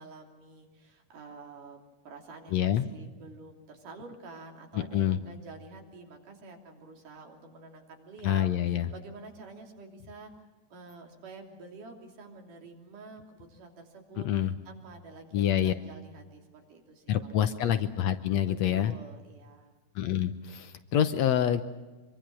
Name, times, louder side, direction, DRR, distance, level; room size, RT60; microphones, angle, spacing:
voice 1, 0.0-10.3 10.7-17.8 18.5-19.7, right 3 dB, 80° right, 2 dB, 4.7 m, -49 dB
voice 2, 2.5-2.9 4.9-5.2 8.2-8.9 14.2-14.5 15.3-15.7 17.1-18.9 20.0-21.6, left 10 dB, 70° left, 10 dB, 1.9 m, -26 dB
25.0 x 23.5 x 6.2 m, 1.2 s
omnidirectional pair, 3.6 m